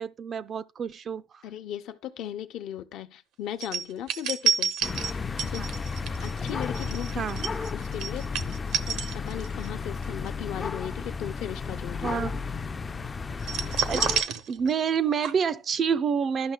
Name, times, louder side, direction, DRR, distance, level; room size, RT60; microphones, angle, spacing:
voice 1, 0.0-1.4 5.6-5.7 7.2-7.4 12.0-12.3 13.9-14.1 14.5-16.5, right 6 dB, 40° right, 0.4 m, -28 dB
voice 2, 1.4-4.7 5.5-5.6 6.2-7.2 7.7-8.5 8.9-12.2, left 10 dB, 70° left, 0.7 m, -37 dB
sound 1, 3.6-9.7 10.0-10.3 13.4-15.0 15.2-15.3, right 7 dB, 75° right, 0.7 m, -29 dB
sound 2, 4.8-14.2, left 5 dB, 25° left, 0.4 m, -33 dB
12.0 x 5.7 x 2.2 m
cardioid pair, 105°, 0 cm